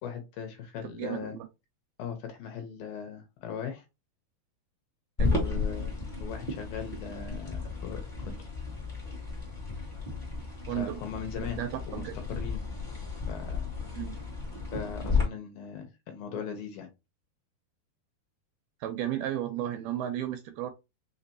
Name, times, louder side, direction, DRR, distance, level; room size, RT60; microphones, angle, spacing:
voice 1, 0.0-1.3 2.0-3.8 5.2-5.9 6.2-8.4 10.7-11.6 11.9-12.6 13.3-13.6 14.7-16.9, left 7 dB, 75° left, 5 dB, 2.5 m, -39 dB
voice 2, 1.0-1.5 5.2-5.4 10.7-11.0 11.4-12.2 13.9-14.1 18.8-20.7, right 11 dB, 80° right, 6 dB, 2.3 m, -33 dB
sound 1, 5.2-15.2, left 4 dB, 35° left, 0.7 m, -33 dB
6.0 x 2.8 x 2.8 m, 0.24 s
omnidirectional pair, 4.7 m